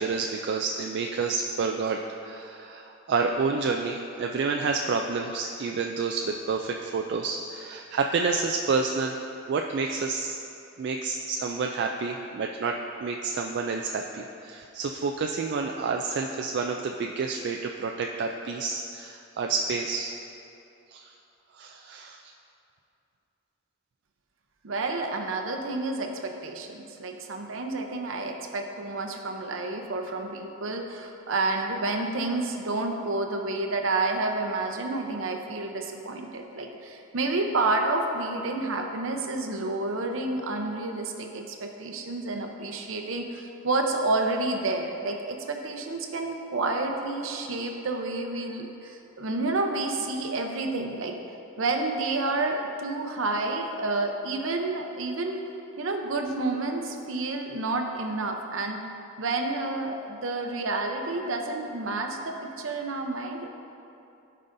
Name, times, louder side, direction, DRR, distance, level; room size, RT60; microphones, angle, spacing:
voice 1, 0.0-10.4 10.8-20.2 20.9-21.1 21.5-22.3, right 4 dB, 55° right, 2 dB, 0.3 m, -29 dB
voice 2, 24.6-51.1 51.6-55.4 55.8-58.8 59.2-63.5, right 2 dB, 70° right, 3 dB, 0.7 m, -29 dB
12.5 x 5.5 x 2.6 m, 2.8 s
head